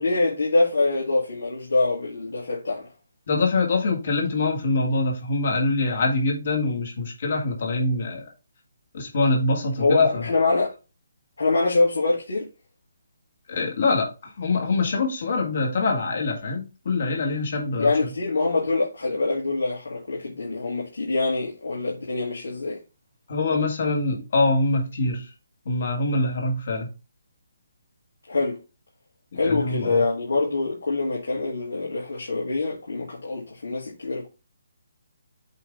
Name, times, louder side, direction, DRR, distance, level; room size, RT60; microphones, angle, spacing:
voice 1, 0.0-2.9 9.8-10.7 11.4-12.5 17.8-22.8 28.3-28.6 29.3-34.3, left 3 dB, 85° left, 3.0 m, -24 dB
voice 2, 3.3-8.2 8.9-10.2 13.5-18.1 23.3-25.3 25.7-26.9 29.4-30.0, left 3 dB, 55° left, 2.3 m, -24 dB
8.2 x 3.9 x 3.7 m
hypercardioid pair, 165°, 0 cm